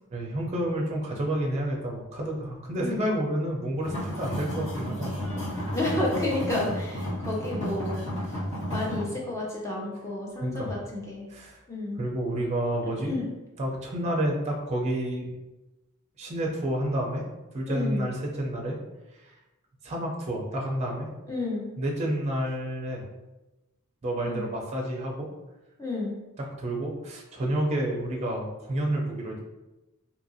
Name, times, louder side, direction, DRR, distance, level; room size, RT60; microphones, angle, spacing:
voice 1, 0.1-5.6 10.4-10.8 11.3-11.6 12.0-13.1 13.6-15.3 16.2-17.2 17.5-18.8 19.8-21.1 21.8-23.0 24.0-25.3 26.6-29.4, right 1 dB, 30° right, -1 dB, 0.5 m, -30 dB
voice 2, 2.8-3.1 5.7-8.0 8.7-11.3 11.7-12.0 13.0-13.3 17.6-18.1 21.3-21.7 24.2-24.4 25.8-26.1, left 2 dB, 15° left, -3 dB, 0.6 m, -31 dB
sound 1, 3.8-9.0, equal, 55° left, 1.4 m, -32 dB
2.8 x 2.5 x 2.6 m, 1.0 s
head